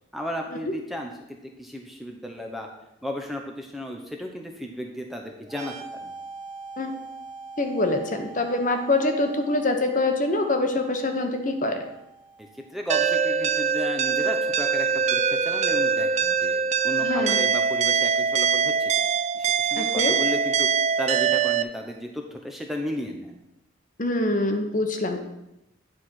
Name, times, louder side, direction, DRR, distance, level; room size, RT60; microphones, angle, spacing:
voice 1, 0.1-1.1 1.6-2.7 3.0-5.7 6.0-6.1 12.4-18.9 19.3-20.7 21.0-23.4, equal, ahead, 1 dB, 0.7 m, -34 dB
sound 1, 5.4-12.9, right 3 dB, 20° right, 1.6 m, -43 dB
voice 2, 7.6-11.8 17.0-17.4 19.8-20.2 24.0-25.2, left 2 dB, 40° left, 5 dB, 1.0 m, -25 dB
sound 2, 12.9-21.6, right 6 dB, 35° right, 0.3 m, -23 dB
9.8 x 4.3 x 6.3 m, 0.89 s
head